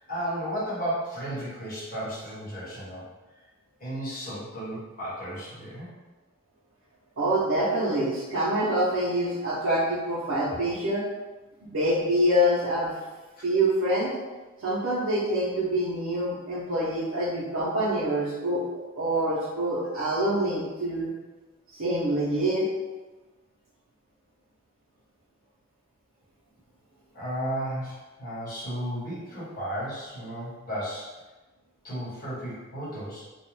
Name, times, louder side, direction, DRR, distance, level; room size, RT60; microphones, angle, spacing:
voice 1, 0.0-3.0 3.8-5.9 13.4-13.5 27.1-31.1 31.8-33.2, equal, 40° left, -8 dB, 1.1 m, -34 dB
voice 2, 7.2-11.0 11.6-12.9 13.4-14.1 14.6-18.6 18.9-21.1 21.7-22.7, right 1 dB, 80° right, -10 dB, 0.6 m, -26 dB
2.4 x 2.1 x 3.1 m, 1.2 s
head